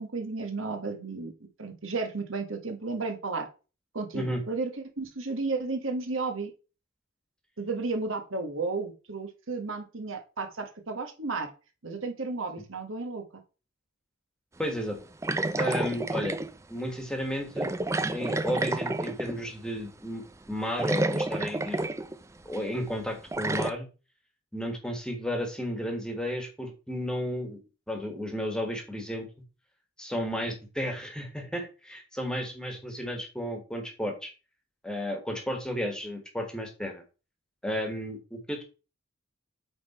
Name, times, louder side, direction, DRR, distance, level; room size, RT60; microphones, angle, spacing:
voice 1, 0.0-1.3 1.6-3.5 3.9-6.5 7.6-11.5 11.8-13.2, right 3 dB, 70° right, 4 dB, 1.4 m, -33 dB
voice 2, 14.6-15.0 15.6-16.4 16.7-17.7 18.1-20.2 20.5-21.8 22.4-23.9 24.5-27.6 27.9-29.3 30.0-34.3 34.8-37.0 37.6-38.6, equal, 5° left, 4 dB, 1.5 m, -33 dB
sound 1, 15.2-16.5 17.6-19.5 20.5-20.6 20.8-22.2 22.5-22.6 23.3-23.7, right 2 dB, 15° right, 0.4 m, -29 dB
8.8 x 3.8 x 4.2 m, 0.32 s
head